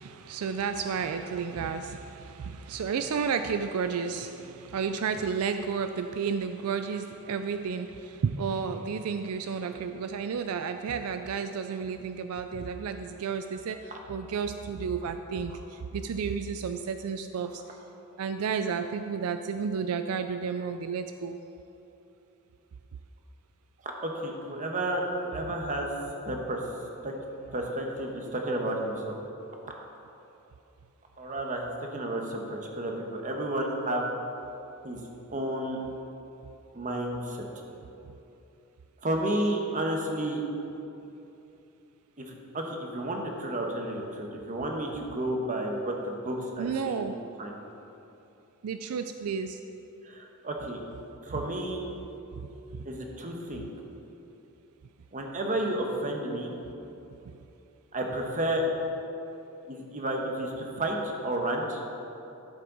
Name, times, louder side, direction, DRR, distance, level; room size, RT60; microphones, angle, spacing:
voice 1, 0.0-17.6 18.2-21.4 46.6-47.2 48.6-49.6 52.4-52.8 53.6-53.7, right 6 dB, 75° right, 8 dB, 0.4 m, -32 dB
voice 2, 23.8-25.9 26.2-26.6 27.0-27.1 27.5-29.2 31.2-34.1 34.8-35.0 35.3-35.8 36.7-37.5 39.0-40.4 42.2-47.1 47.4-47.5 50.0-50.8 51.2-51.8 52.8-53.7 55.1-56.5 57.9-58.6 59.7-61.8, right 1 dB, 35° right, 1 dB, 1.1 m, -31 dB
12.5 x 7.5 x 4.0 m, 2.9 s
head